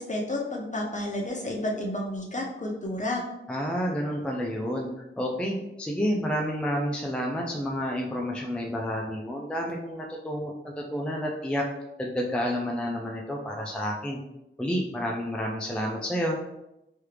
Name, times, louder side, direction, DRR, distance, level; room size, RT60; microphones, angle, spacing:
voice 1, 0.0-3.2, left 1 dB, 35° left, -1 dB, 0.7 m, -31 dB
voice 2, 3.5-4.9 5.2-11.6 12.0-14.2 14.6-16.4, equal, 5° left, -1 dB, 0.4 m, -30 dB
3.1 x 2.4 x 3.3 m, 0.90 s
wide cardioid pair, 65°, 21 cm